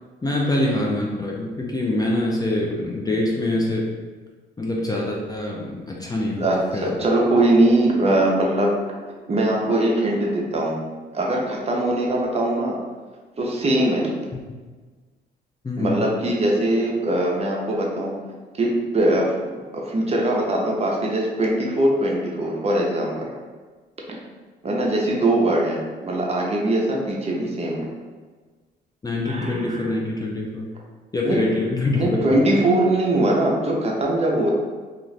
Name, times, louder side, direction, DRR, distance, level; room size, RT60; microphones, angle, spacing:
voice 1, 0.2-3.9 4.6-6.5 6.7-6.9 14.3-14.4 15.6-16.0 29.0-30.7 31.1-32.3, left 2 dB, 20° left, -2 dB, 0.4 m, -24 dB
voice 2, 6.4-8.8 9.3-10.8 11.1-12.8 13.4-14.1 15.8-18.1 18.5-23.3 24.6-27.9 29.3-30.0 31.2-31.5 31.9-34.5, right 1 dB, 30° right, -2 dB, 0.6 m, -21 dB
2.4 x 2.4 x 3.1 m, 1.4 s
cardioid pair, 90°, 20 cm